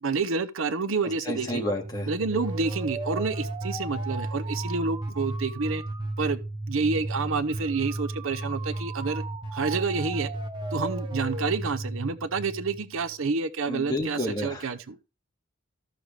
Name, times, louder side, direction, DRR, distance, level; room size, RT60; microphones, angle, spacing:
voice 1, 0.0-1.6 2.1-5.8 6.2-6.4 6.7-9.2 9.5-10.3 10.7-15.0, right 4 dB, 75° right, 0.7 m, -29 dB
voice 2, 1.3-2.1 13.7-14.7, left 1 dB, 20° left, 1.9 m, -30 dB
sound 1, 1.3-13.1, right 2 dB, 20° right, 1.2 m, -34 dB
14.0 x 6.5 x 3.3 m
head